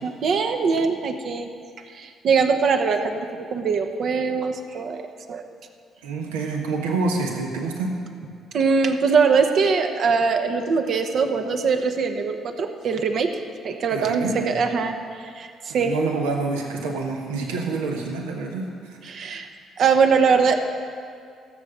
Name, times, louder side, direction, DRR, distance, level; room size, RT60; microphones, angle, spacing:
voice 1, 0.0-1.5 1.9-5.0 5.3-5.4 8.5-13.3 13.6-14.9 15.4-15.9 19.1-19.5 19.8-20.6, right 5 dB, 60° right, 5 dB, 1.0 m, -22 dB
voice 2, 6.0-8.0 13.9-14.6 15.7-19.2, right 3 dB, 80° right, 1 dB, 1.2 m, -27 dB
15.5 x 7.3 x 6.7 m, 2.2 s
hypercardioid pair, 45°, 0 cm